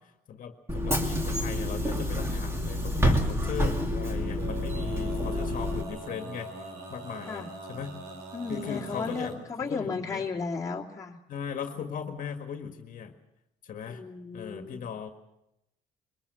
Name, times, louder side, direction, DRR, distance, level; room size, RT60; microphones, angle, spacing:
voice 1, 0.3-6.5 6.9-7.9 8.5-10.2 11.3-13.1 13.6-14.0 14.3-15.1, left 7 dB, 50° left, 5 dB, 1.8 m, -38 dB
Bus / Engine, 0.7-5.8, equal, 15° right, 2.8 m, -28 dB
Male singing, 4.0-9.4, right 2 dB, 80° right, 3.9 m, -42 dB
voice 2, 8.3-11.2 13.9-14.9, left 4 dB, 20° left, -2 dB, 2.5 m, -34 dB
22.5 x 19.0 x 6.9 m, 0.86 s
cardioid pair, 110°, 17 cm